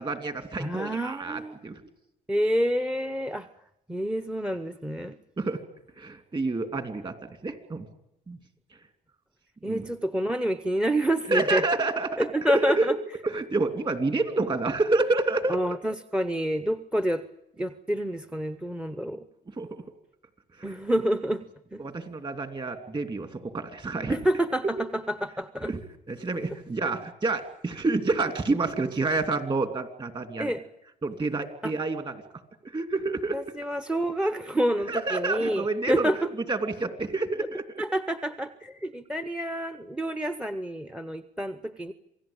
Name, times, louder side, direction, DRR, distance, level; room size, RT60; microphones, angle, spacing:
voice 1, 0.0-1.8 5.4-5.6 6.0-7.1 7.4-7.9 8.3-8.4 9.6-9.8 11.3-12.9 13.2-15.6 19.6-19.8 20.7-20.8 21.8-24.2 25.6-25.8 26.1-30.5 31.0-32.1 32.6-33.4 34.9-36.1 36.5-37.6, right 3 dB, 30° right, 8 dB, 2.9 m, -28 dB
voice 2, 0.6-1.6 2.3-3.5 3.9-5.2 9.6-11.6 12.2-13.0 15.5-17.2 17.6-19.2 20.6-21.4 21.7-21.8 24.1-25.7 30.4-30.6 31.6-31.7 33.3-36.3 37.4-37.5 37.8-41.9, equal, 5° right, 12 dB, 0.9 m, -28 dB
27.5 x 18.0 x 8.9 m, 0.87 s
cardioid pair, 110°, 17 cm